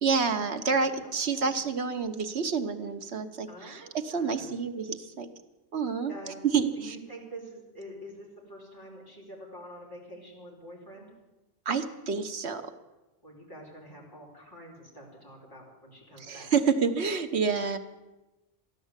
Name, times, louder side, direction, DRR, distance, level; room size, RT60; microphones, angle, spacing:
voice 1, 0.0-5.3 5.7-6.1 6.5-7.0 11.6-12.7 16.2-17.8, right 5 dB, 65° right, 7 dB, 1.3 m, -28 dB
voice 2, 1.0-1.6 3.5-4.6 6.1-6.3 6.7-11.1 13.2-16.5, right 1 dB, 15° left, -4 dB, 4.7 m, -46 dB
14.5 x 11.5 x 8.2 m, 1.1 s
omnidirectional pair, 1.2 m